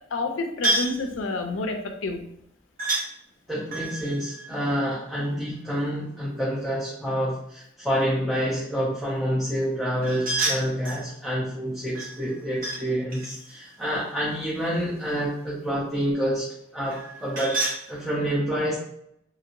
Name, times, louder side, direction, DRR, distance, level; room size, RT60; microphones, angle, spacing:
voice 1, 0.1-2.3, left 3 dB, 75° left, 5 dB, 0.5 m, -29 dB
sound 1, 0.6-1.0 2.8-3.1 3.7-5.5 10.0-11.1 12.0-12.8 13.1-15.0 16.9-17.8, right 2 dB, 45° right, 0.8 m, -30 dB
voice 2, 3.5-17.6 17.9-18.8, equal, ahead, -7 dB, 0.6 m, -28 dB
2.9 x 2.9 x 2.5 m, 0.74 s
head